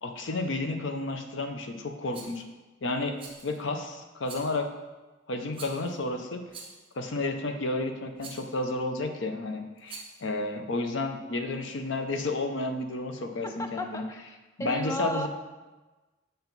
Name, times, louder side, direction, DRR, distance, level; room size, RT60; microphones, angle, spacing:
voice 1, 0.0-2.4 2.8-3.1 3.4-4.7 5.3-6.4 7.0-14.0 14.6-15.3, left 2 dB, 70° left, 5 dB, 0.6 m, -31 dB
Rattle, 2.1-2.4 3.2-3.6 4.2-4.6 5.5-6.0 6.5-6.9 8.2-8.5 9.8-10.3, right 4 dB, 25° right, 1.0 m, -45 dB
voice 2, 13.4-14.3 14.6-15.3, equal, 15° left, 4 dB, 0.4 m, -34 dB
6.6 x 4.5 x 4.0 m, 1.2 s
head